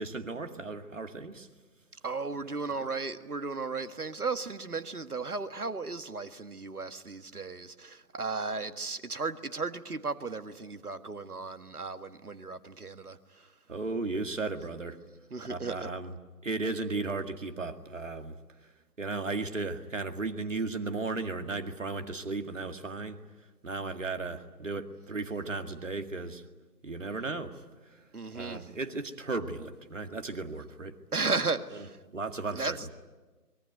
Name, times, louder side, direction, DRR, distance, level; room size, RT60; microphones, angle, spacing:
voice 1, 0.0-1.5 13.7-15.0 15.5-16.1 16.4-18.4 18.6-18.7 19.0-23.2 23.6-26.4 26.8-28.1 28.3-31.0 32.1-32.8, right 3 dB, 50° right, 2.1 m, -35 dB
voice 2, 2.0-13.5 15.3-15.9 28.1-28.7 31.1-32.0 32.5-32.9, right 4 dB, 65° right, 1.8 m, -35 dB
25.0 x 22.5 x 9.2 m
figure-of-eight pair, 155°, 48 cm